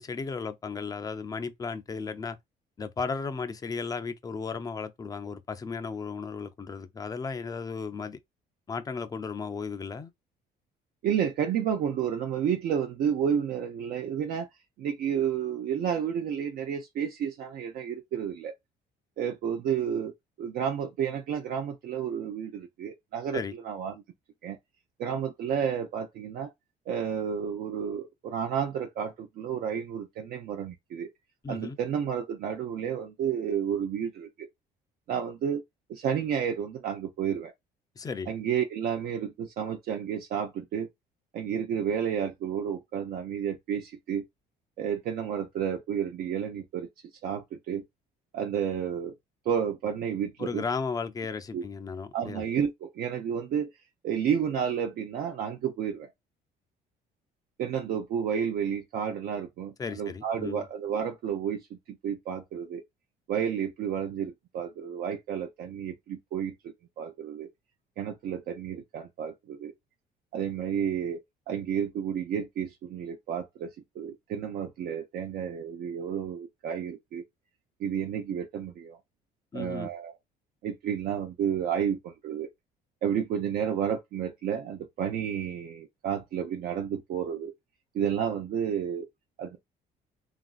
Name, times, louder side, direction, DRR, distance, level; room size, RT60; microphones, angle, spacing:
voice 1, 0.0-2.4 2.8-8.2 8.7-10.1 23.3-23.6 31.4-31.8 38.0-38.3 50.4-52.4 59.8-60.7 79.5-79.9, left 5 dB, 20° left, 0.4 m, -35 dB
voice 2, 11.0-14.5 14.8-18.5 19.2-20.1 20.4-23.9 24.4-24.6 25.0-26.5 26.9-31.1 31.5-34.5 35.1-35.6 35.9-37.5 38.3-40.9 41.3-44.3 44.8-46.9 47.2-47.8 48.3-49.1 49.5-50.6 51.5-51.6 52.1-53.7 54.0-56.1 57.6-62.8 63.3-67.5 68.0-69.7 70.3-73.7 74.0-77.2 77.8-79.0 79.5-80.2 80.6-82.5 83.0-87.5 87.9-89.1 89.4-89.6, right 8 dB, 65° right, 0.5 m, -31 dB
3.0 x 2.5 x 2.3 m
cardioid pair, 110°, 17 cm